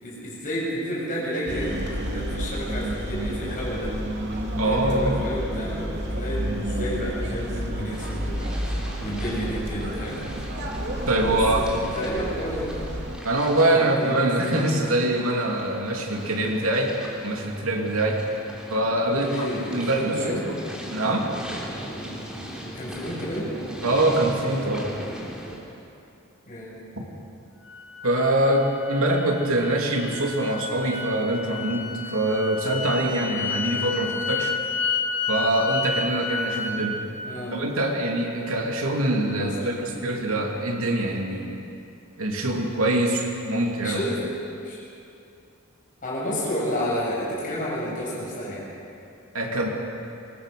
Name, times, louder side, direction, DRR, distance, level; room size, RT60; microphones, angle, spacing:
voice 1, 0.0-1.8 2.1-3.9 4.5-8.4 9.0-10.2 11.2-12.7 13.7-14.8 19.2-20.4 22.7-23.5 26.5-26.8 37.2-37.7 39.4-40.0 43.8-44.2 44.6-44.9 46.0-48.7, equal, 40° left, -5 dB, 7.1 m, -31 dB
sound 1, 1.5-13.2, equal, 55° right, 2.6 m, -30 dB
voice 2, 4.6-5.2 6.6-6.9 11.1-11.6 13.2-16.9 17.2-18.2 18.7-20.6 20.9-21.3 23.8-24.9 28.0-34.5 35.3-37.0 37.5-41.6 42.2-44.0 49.3-49.7, right 1 dB, 85° right, 1 dB, 2.7 m, -24 dB
sound 2, 7.9-25.6, equal, 5° right, 3.5 m, -39 dB
sound 3, 27.6-36.8, left 5 dB, 65° left, 3.9 m, -31 dB
21.5 x 19.5 x 6.7 m, 2.7 s
head